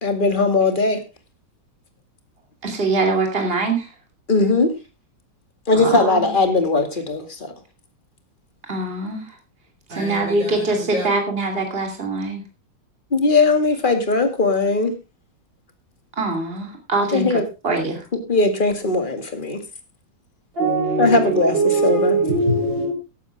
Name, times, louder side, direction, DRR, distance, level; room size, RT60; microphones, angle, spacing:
voice 1, 0.0-1.0 4.3-4.7 5.7-7.5 13.1-14.9 17.1-17.4 18.3-19.6 21.0-22.2, left 3 dB, 25° left, 2.3 m, -19 dB
voice 2, 2.6-3.9 5.7-6.3 8.7-9.2 9.9-12.4 16.2-18.0, right 2 dB, 30° right, 3.1 m, -23 dB
voice 3, 9.9-10.5 10.9-11.0 20.6-22.9, right 3 dB, 80° right, 6.2 m, -21 dB
14.5 x 12.0 x 3.5 m
omnidirectional pair, 2.0 m